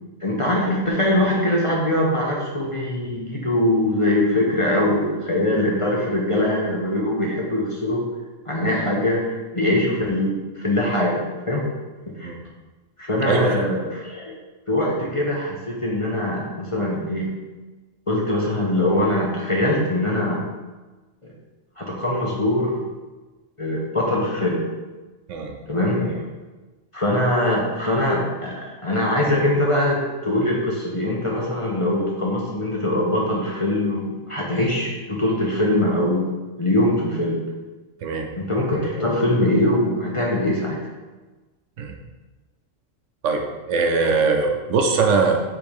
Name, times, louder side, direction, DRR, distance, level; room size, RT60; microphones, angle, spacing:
voice 1, 0.2-8.0 8.5-11.7 12.1-12.3 13.0-14.4 14.7-17.3 18.1-20.4 21.2-21.3 21.8-22.8 23.6-24.6 25.7-26.3 26.9-36.3 36.6-37.4 38.4-40.8, left 1 dB, 30° left, -3 dB, 0.7 m, -22 dB
voice 2, 13.2-13.7 25.3-25.5 38.0-38.3 41.8-41.9 43.2-45.4, right 4 dB, 75° right, 3 dB, 1.0 m, -21 dB
5.0 x 3.6 x 5.3 m, 1.2 s
omnidirectional pair, 1.3 m